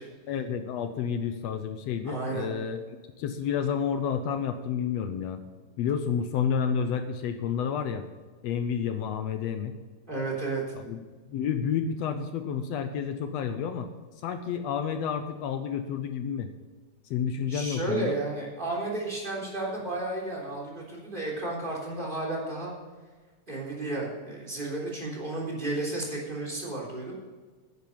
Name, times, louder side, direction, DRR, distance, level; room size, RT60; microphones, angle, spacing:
voice 1, 0.3-2.8 3.2-5.4 5.8-8.0 8.4-9.8 10.8-11.0 11.3-13.9 14.2-16.5 17.1-18.2, left 7 dB, 75° left, 8 dB, 1.6 m, -30 dB
voice 2, 2.0-2.5 10.1-10.6 17.5-22.7 23.5-27.1, right 2 dB, 15° right, -2 dB, 3.3 m, -32 dB
10.5 x 9.6 x 5.5 m, 1.4 s
omnidirectional pair, 3.7 m